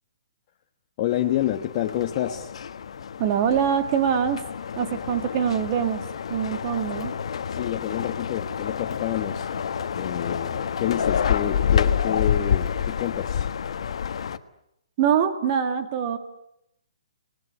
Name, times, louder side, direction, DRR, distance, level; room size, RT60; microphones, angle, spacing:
voice 1, 1.0-2.5 7.5-9.5 9.9-13.5, left 12 dB, 30° left, 4 dB, 1.2 m, -28 dB
sound 1, 1.1-14.4, left 7 dB, 60° left, 1.4 m, -28 dB
voice 2, 3.2-4.4 4.8-6.0 6.3-7.2 15.0-16.2, right 8 dB, 30° right, 7 dB, 2.2 m, -24 dB
29.0 x 20.0 x 9.6 m, 0.80 s
hypercardioid pair, 160°, 3 cm